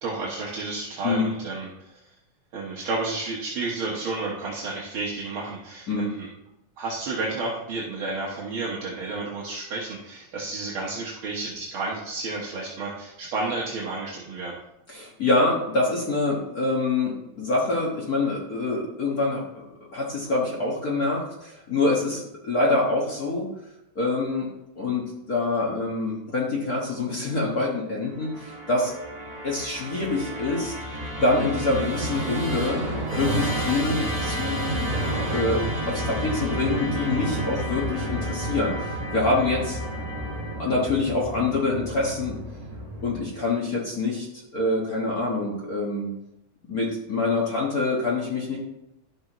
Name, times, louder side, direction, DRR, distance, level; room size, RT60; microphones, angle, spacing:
voice 1, 0.0-1.7 2.5-6.3 6.8-14.6, right 3 dB, 55° right, -4 dB, 1.6 m, -31 dB
voice 2, 14.9-19.6 19.9-23.5 23.9-24.4 24.8-28.9 29.4-30.7 31.2-32.8 33.2-34.9 35.3-39.8 40.6-42.4 43.0-44.3 44.5-46.1 46.7-48.6, left 2 dB, 50° left, -3 dB, 1.1 m, -25 dB
Musical instrument, 28.2-43.5, right 1 dB, 20° right, 0.9 m, -30 dB
12.0 x 6.4 x 3.0 m, 0.85 s
omnidirectional pair, 3.6 m